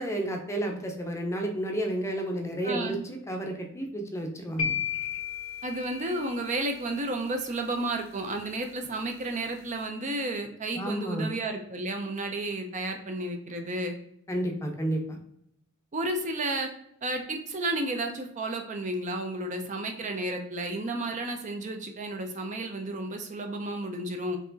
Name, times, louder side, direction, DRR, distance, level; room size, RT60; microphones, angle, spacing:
voice 1, 0.0-4.7 10.8-11.3 14.3-15.2, right 1 dB, 15° left, 3 dB, 0.6 m, -31 dB
voice 2, 2.6-3.0 5.6-14.0 15.9-16.7 17.0-24.4, right 2 dB, 35° right, 4 dB, 0.5 m, -32 dB
sound 1, 4.6-6.7, left 8 dB, 70° left, 0.8 m, -33 dB
4.6 x 3.0 x 3.9 m, 0.73 s
head